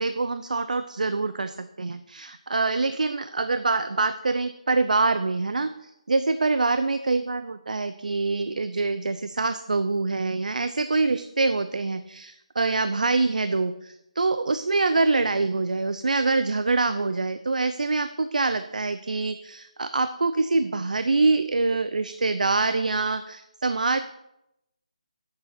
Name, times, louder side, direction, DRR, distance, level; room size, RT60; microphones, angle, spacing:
voice 1, 0.0-24.0, right 3 dB, 80° right, 10 dB, 0.6 m, -25 dB
8.7 x 6.8 x 5.8 m, 0.84 s
figure-of-eight pair, 175°, 4 cm